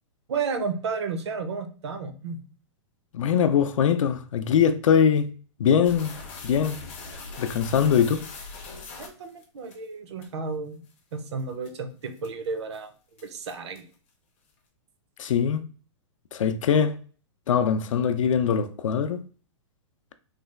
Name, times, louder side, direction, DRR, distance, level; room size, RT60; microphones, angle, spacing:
voice 1, 0.3-2.4 9.0-10.7 11.1-12.9 13.2-13.8, right 5 dB, 60° right, 0.6 m, -32 dB
voice 2, 3.1-5.3 5.6-6.1 6.4-6.8 7.4-8.2 15.2-15.6 16.3-16.9 17.5-19.2, left 7 dB, 80° left, 0.5 m, -22 dB
sound 1, 5.8-9.7 10.2-10.3 10.9-11.0 11.4-11.7 12.2-12.5 12.7-12.8 13.2-13.9, left 3 dB, 25° left, 0.5 m, -41 dB
3.2 x 2.2 x 3.2 m
hypercardioid pair, 180°, 16 cm